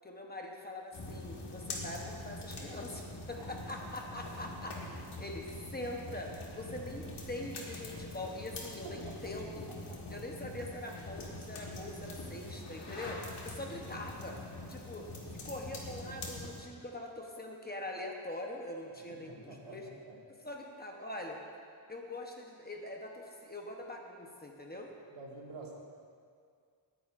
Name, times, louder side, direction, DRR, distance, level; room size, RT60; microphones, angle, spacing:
voice 1, 0.0-9.7 10.1-14.4 14.7-15.1 15.3-19.8 20.4-21.4 21.9-24.9, left 1 dB, 20° left, 0 dB, 0.9 m, -43 dB
sound 1, 0.9-16.6, left 2 dB, 60° left, 1.7 m, -44 dB
voice 2, 3.8-4.3 8.8-9.3 9.9-10.2 19.0-20.2 25.1-25.7, right 3 dB, 85° right, -3 dB, 2.1 m, -50 dB
19.0 x 10.0 x 2.5 m, 2.2 s
wide cardioid pair, 175°, 47 cm